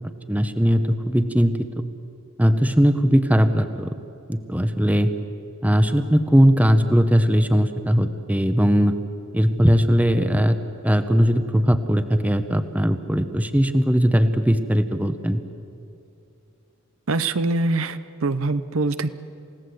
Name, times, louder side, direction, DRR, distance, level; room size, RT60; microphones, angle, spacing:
voice 1, 0.3-1.6 2.4-3.9 4.3-5.1 5.6-9.0 9.3-10.6 10.8-15.4, equal, 5° right, 9 dB, 0.9 m, -19 dB
voice 2, 17.1-19.1, right 2 dB, 70° right, 13 dB, 0.7 m, -23 dB
28.0 x 17.0 x 7.8 m, 2.6 s
head